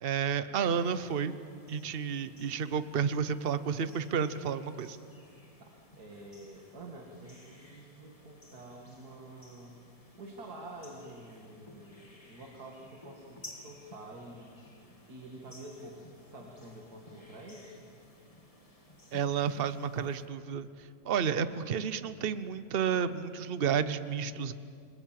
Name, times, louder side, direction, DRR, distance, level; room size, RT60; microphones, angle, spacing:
voice 1, 0.0-1.3 1.7-5.0 19.1-20.7 21.0-24.5, right 7 dB, 45° right, 13 dB, 0.9 m, -31 dB
sound 1, 0.6-20.3, left 1 dB, 20° left, 2.5 m, -56 dB
voice 2, 5.6-9.8 10.2-14.6 15.1-17.9, right 2 dB, 80° right, 0 dB, 2.6 m, -48 dB
29.0 x 20.5 x 7.6 m, 2.4 s
omnidirectional pair, 1.6 m